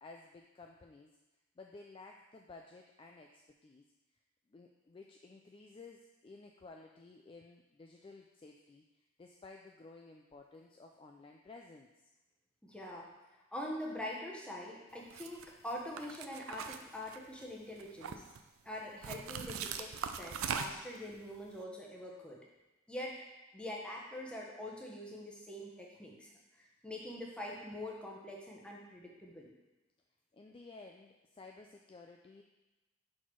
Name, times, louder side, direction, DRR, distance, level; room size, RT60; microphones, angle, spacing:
voice 1, 0.0-1.1 1.6-3.8 4.5-8.8 9.2-11.9 30.3-32.4, left 3 dB, 25° left, 1 dB, 0.3 m, -54 dB
voice 2, 12.6-13.1 13.5-18.2 18.6-22.4 22.9-23.2 23.5-26.3 26.6-29.5, left 1 dB, 5° left, -3 dB, 0.9 m, -44 dB
sound 1, 15.1-15.4 16.0-17.4 17.8-18.4 19.0-21.0, right 7 dB, 80° right, 0.4 m, -40 dB
6.0 x 4.2 x 4.6 m, 1.1 s
head